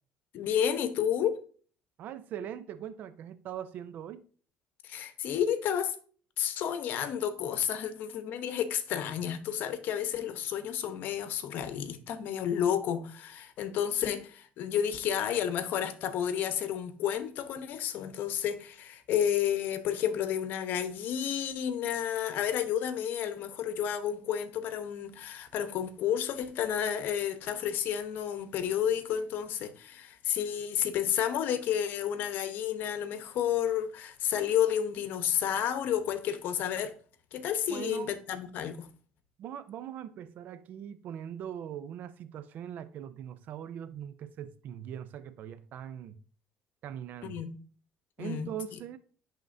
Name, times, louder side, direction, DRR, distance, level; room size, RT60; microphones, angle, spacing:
voice 1, 0.3-1.4 4.8-5.9 6.4-36.9 37.3-38.9 47.2-47.6 48.2-48.5, left 9 dB, 65° left, 1.0 m, -31 dB
voice 2, 2.0-4.2 37.7-38.1 39.4-46.2 46.8-47.4 48.2-49.0, right 9 dB, 60° right, 0.6 m, -41 dB
11.0 x 3.7 x 2.6 m
cardioid pair, 110°, 3 cm